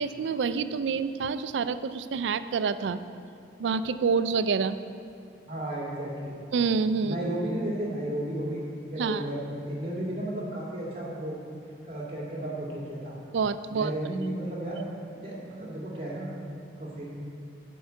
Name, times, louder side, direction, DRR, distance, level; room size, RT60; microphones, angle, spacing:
voice 1, 0.0-3.0 3.6-4.8 6.5-7.2 9.0-9.2 13.3-13.9, right 5 dB, 85° right, 13 dB, 0.4 m, -27 dB
voice 2, 5.5-6.4 7.0-8.6 8.9-9.4 9.7-11.4 11.8-13.2 13.7-14.8 15.1-16.3 16.8-17.1, right 1 dB, 30° right, -5 dB, 2.3 m, -33 dB
10.0 x 4.6 x 7.8 m, 2.3 s
head